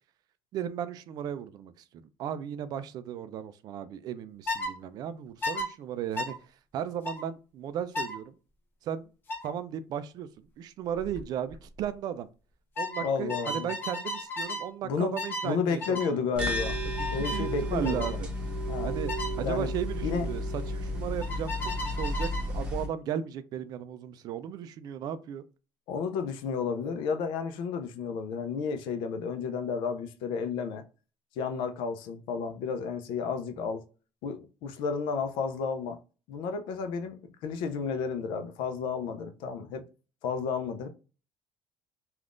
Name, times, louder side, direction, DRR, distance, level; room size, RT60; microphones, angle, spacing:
voice 1, 0.5-1.8 2.2-8.3 8.8-9.1 9.4-12.3 12.8-16.3 16.9-18.3 18.8-19.1 19.4-25.4, right 9 dB, 55° right, 0.3 m, -36 dB
sound 1, 4.5-4.7 5.4-5.7 6.2-6.3 7.0-7.2 7.9-8.2 9.3-9.5 11.0-11.2 11.5-11.8 12.8-14.7 15.2-15.5 15.8-16.1 17.0-17.4 17.8-18.2 19.1-19.3 21.2-22.5, left 1 dB, 25° left, 0.7 m, -34 dB
voice 2, 13.0-13.7 14.8-15.1 15.4-16.8 17.1-18.2 18.7-18.9 19.4-19.7 20.0-20.3 25.9-30.8 31.4-33.8 34.2-36.0 36.3-39.8 40.2-40.9, left 5 dB, 80° left, 0.5 m, -32 dB
sound 2, 16.4-22.9, equal, 15° right, 0.8 m, -32 dB
3.4 x 2.4 x 2.5 m
cardioid pair, 135°, 8 cm